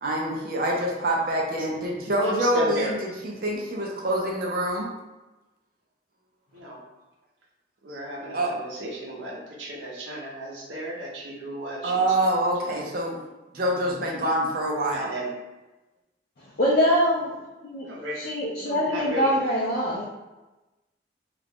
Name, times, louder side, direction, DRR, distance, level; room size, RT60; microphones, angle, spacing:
voice 1, 0.0-2.9 3.2-4.9 8.3-8.5 11.8-13.2 13.5-15.1, right 1 dB, 50° right, -1 dB, 0.5 m, -25 dB
voice 2, 2.2-3.0 6.5-6.8 7.8-12.9 14.9-15.3 17.8-18.2 18.6-19.3, equal, 85° right, -3 dB, 0.8 m, -34 dB
voice 3, 16.6-17.3 17.6-17.9 18.2-20.1, equal, 50° left, -7 dB, 0.5 m, -23 dB
2.4 x 2.2 x 3.4 m, 1.1 s
head